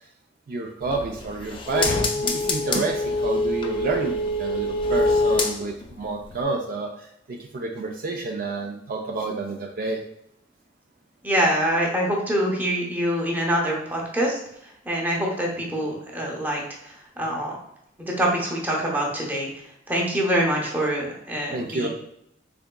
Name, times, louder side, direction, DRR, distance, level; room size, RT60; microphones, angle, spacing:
voice 1, 0.5-10.0 21.5-21.9, right 3 dB, 50° right, 1 dB, 0.4 m, -29 dB
sound 1, 0.8-6.0 6.3-6.4, left 1 dB, 30° left, 0.4 m, -25 dB
voice 2, 11.2-14.4 14.8-17.6 18.0-19.5 19.9-21.9, equal, 10° right, -3 dB, 0.8 m, -25 dB
3.7 x 3.4 x 2.2 m, 0.75 s
head